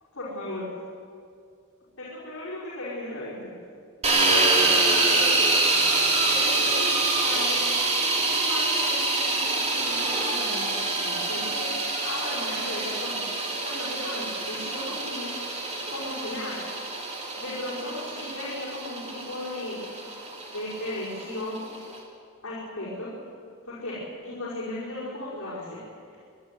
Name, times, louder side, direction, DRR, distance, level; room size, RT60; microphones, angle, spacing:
voice 1, 0.1-0.6 2.0-3.4 4.2-5.5 6.3-15.3 15.9-16.6 17.0-17.1 17.4-19.8 20.5-21.6 22.4-23.1 23.6-25.8, left 1 dB, 70° left, -9 dB, 5.6 m, -36 dB
sound 1, 4.0-22.0, right 3 dB, 30° right, 3.3 m, -26 dB
26.0 x 11.5 x 9.3 m, 2.4 s
head